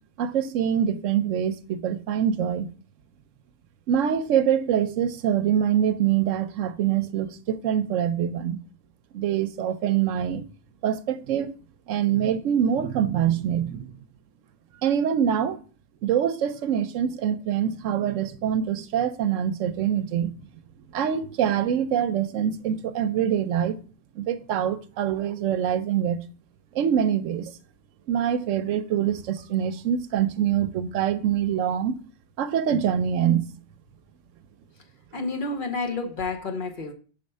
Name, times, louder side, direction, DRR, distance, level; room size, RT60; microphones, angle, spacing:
voice 1, 0.2-2.7 3.9-8.6 9.1-10.4 10.8-11.5 11.9-13.9 14.8-15.6 16.0-20.3 20.9-23.8 24.2-26.2 26.7-27.5 28.1-32.0 32.4-33.4, right 9 dB, 80° right, 0.9 m, -24 dB
voice 2, 35.1-36.9, left 3 dB, 45° left, 0.9 m, -30 dB
5.6 x 4.4 x 5.3 m
omnidirectional pair, 1.3 m